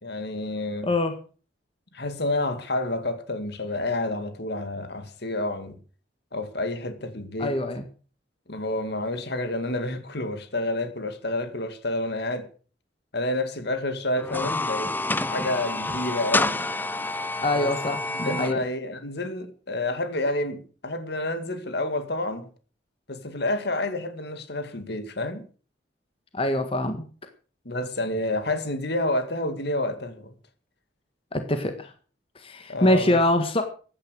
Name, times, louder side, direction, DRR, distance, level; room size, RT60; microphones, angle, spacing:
voice 1, 0.0-0.9 1.9-5.8 6.3-7.5 8.5-12.4 13.1-14.9 15.3-16.6 17.5-17.7 18.2-22.5 23.1-25.4 27.7-30.3 32.7-33.2, left 2 dB, 60° left, 2.3 m, -29 dB
voice 2, 0.8-1.1 7.4-7.9 17.4-18.6 26.3-27.1 31.3-31.9 32.3-33.6, left 1 dB, 30° left, 1.6 m, -24 dB
sound 1, 14.2-18.5, left 2 dB, 10° left, 0.7 m, -28 dB
15.0 x 10.5 x 6.4 m
head